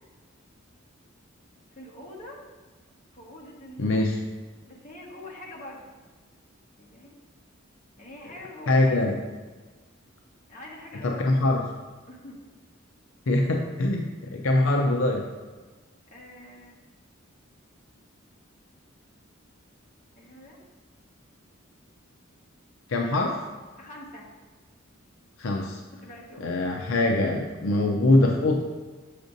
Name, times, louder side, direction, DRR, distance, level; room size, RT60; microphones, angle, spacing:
voice 1, 1.7-2.4 3.1-4.0 4.7-5.9 6.8-7.1 8.0-9.0 10.5-11.4 12.1-12.5 16.1-16.7 20.2-20.6 23.8-24.3 26.0-26.8, left 1 dB, 35° left, -3 dB, 1.3 m, -44 dB
voice 2, 3.8-4.2 8.7-9.2 11.0-11.6 13.3-15.3 22.9-23.4 25.4-25.8 26.4-28.6, left 2 dB, 70° left, 1 dB, 0.6 m, -23 dB
7.0 x 6.7 x 2.6 m, 1.3 s
head